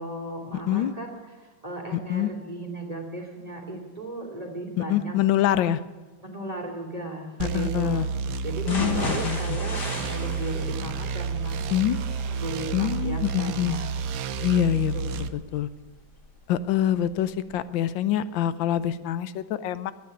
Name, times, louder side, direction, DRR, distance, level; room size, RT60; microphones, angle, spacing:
voice 1, 0.0-5.1 6.2-8.1 8.4-11.8 12.4-14.0 14.7-15.4, right 1 dB, 20° right, 0 dB, 2.6 m, -36 dB
voice 2, 1.9-2.3 4.9-5.8 7.5-8.1 8.7-9.4 11.7-12.0 12.7-13.8 14.4-14.9 15.3-15.7 16.5-19.9, left 11 dB, 75° left, 15 dB, 1.4 m, -25 dB
sound 1, 7.4-15.3, right 5 dB, 65° right, 0.9 m, -30 dB
sound 2, 8.7-16.6 17.0-17.1 17.5-17.6, left 3 dB, 55° left, 2.6 m, -37 dB
12.0 x 9.5 x 9.9 m, 1.3 s
omnidirectional pair, 2.2 m